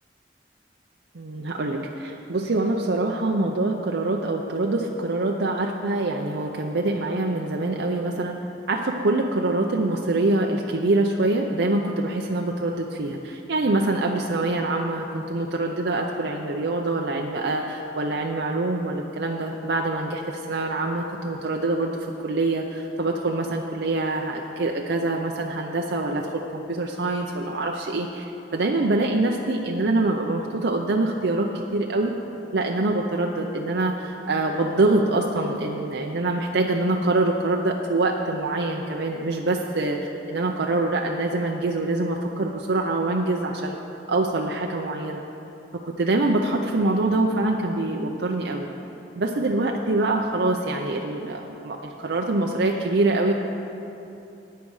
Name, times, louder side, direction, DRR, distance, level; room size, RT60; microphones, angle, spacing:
voice 1, 1.1-8.4 8.7-32.1 32.5-43.8 44.1-45.2 45.8-48.7 49.2-53.3, right 2 dB, 75° right, 1 dB, 0.6 m, -25 dB
13.5 x 9.2 x 4.8 m, 2.9 s
head